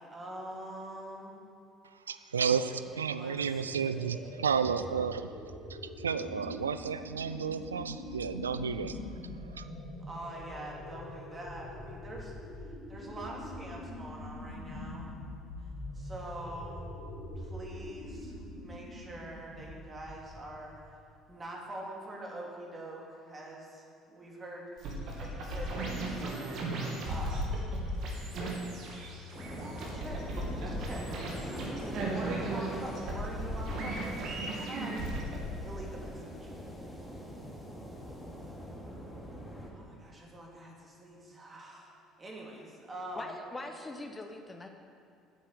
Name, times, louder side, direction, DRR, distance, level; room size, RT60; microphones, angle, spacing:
voice 1, 0.0-1.4 3.0-3.9 10.1-15.1 15.6-16.9 17.3-20.8 21.3-26.5 27.0-27.6 29.9-31.1 31.4-35.0 35.6-36.5 39.7-41.9 42.2-43.4, right 1 dB, 30° right, -2 dB, 2.9 m, -45 dB
voice 2, 2.1-5.3 5.7-9.0 9.6-9.7, right 6 dB, 90° right, 12 dB, 0.3 m, -32 dB
sound 1, 3.3-20.8, left 1 dB, 80° left, 2.6 m, -44 dB
sound 2, 24.8-35.4, right 1 dB, 60° right, 2.3 m, -36 dB
sound 3, 29.3-39.7, equal, ahead, 2.6 m, -43 dB
voice 3, 43.1-44.7, left 2 dB, 20° left, 4 dB, 1.0 m, -42 dB
9.5 x 8.2 x 6.8 m, 2.4 s
hypercardioid pair, 60°, 0 cm